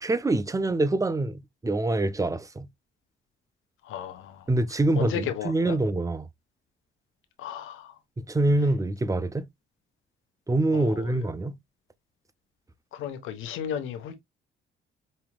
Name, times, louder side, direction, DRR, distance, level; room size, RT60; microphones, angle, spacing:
voice 1, 0.0-2.7 4.5-6.3 8.2-9.5 10.5-11.6, right 2 dB, 15° right, 0.5 m, -25 dB
voice 2, 3.8-4.5 5.0-5.8 7.4-7.9 10.7-11.2 12.9-14.2, left 9 dB, 85° left, 1.0 m, -34 dB
5.4 x 2.9 x 2.2 m
cardioid pair, 90°, 20 cm